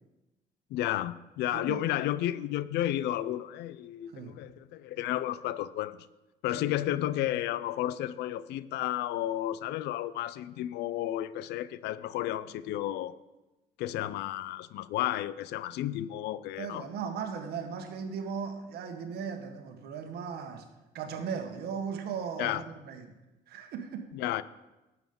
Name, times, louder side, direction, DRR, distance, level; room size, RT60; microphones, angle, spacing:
voice 1, 0.7-6.1 6.4-13.1 13.8-16.8 22.4-22.6 24.1-24.4, left 13 dB, 80° left, 0.5 m, -32 dB
voice 2, 1.5-1.9 4.1-4.4 6.5-6.7 16.6-20.7 20.9-23.1 23.5-24.1, right 6 dB, 70° right, 1.4 m, -37 dB
12.0 x 7.4 x 5.3 m
cardioid pair, 110°, 17 cm